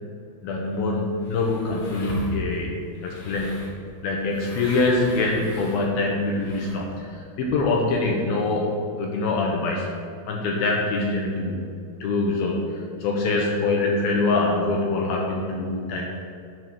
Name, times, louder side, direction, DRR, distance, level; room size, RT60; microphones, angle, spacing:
voice 1, 0.4-2.7 3.0-3.5 4.0-6.9 7.4-8.7 9.0-9.9 10.3-11.6 12.0-12.6 13.0-16.1, left 3 dB, 75° left, -1 dB, 2.2 m, -24 dB
sound 1, 0.6-7.0, left 1 dB, 55° left, 2.0 m, -39 dB
11.0 x 4.0 x 6.0 m, 2.3 s
omnidirectional pair, 5.3 m